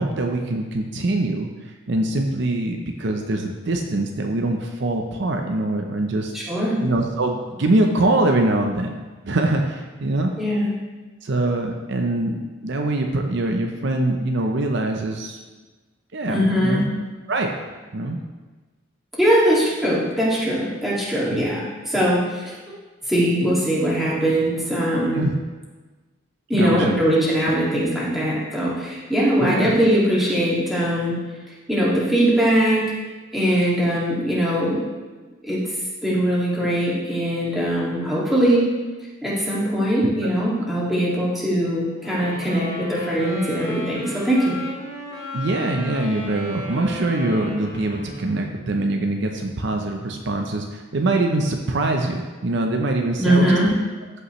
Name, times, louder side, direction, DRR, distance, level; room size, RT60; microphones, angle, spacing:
voice 1, 0.0-1.5 1.9-6.3 6.8-9.0 9.3-10.3 11.2-15.4 16.1-16.8 17.3-17.5 17.9-18.2 21.3-21.4 25.1-25.3 26.6-27.0 29.4-29.7 40.0-40.3 45.3-53.6, right 2 dB, 60° right, 3 dB, 0.7 m, -23 dB
voice 2, 6.3-6.8 10.4-10.7 16.3-16.9 19.2-22.6 23.1-25.2 26.5-31.1 31.7-32.9 33.3-34.8 35.4-35.6 36.0-38.7 39.2-44.5 53.2-53.7, equal, ahead, -7 dB, 2.2 m, -21 dB
Wind instrument woodwind instrument, 42.0-48.5, left 1 dB, 50° left, 2.9 m, -34 dB
14.0 x 5.6 x 3.1 m, 1.3 s
head